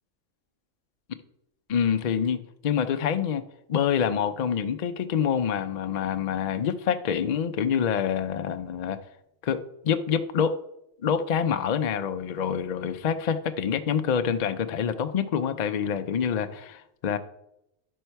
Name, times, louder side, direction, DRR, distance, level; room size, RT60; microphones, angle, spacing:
voice 1, 1.7-3.4 3.7-9.0 9.4-10.6 11.0-17.2, left 7 dB, 85° left, 8 dB, 0.3 m, -26 dB
11.0 x 5.5 x 4.5 m, 0.83 s
omnidirectional pair, 1.5 m